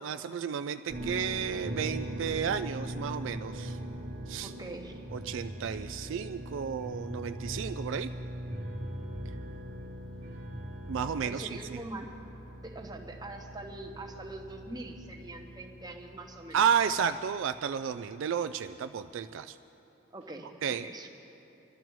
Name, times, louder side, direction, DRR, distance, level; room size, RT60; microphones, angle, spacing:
voice 1, 0.0-3.8 4.3-4.5 5.1-8.1 10.9-11.8 16.5-19.6 20.6-20.9, right 7 dB, 65° right, 10 dB, 0.3 m, -32 dB
sound 1, 0.9-17.4, equal, 50° right, 1.3 m, -41 dB
voice 2, 4.4-5.0 11.2-12.1 12.6-16.6 20.1-21.1, right 2 dB, 20° right, 2 dB, 0.9 m, -43 dB
24.0 x 12.0 x 3.1 m, 3.0 s
head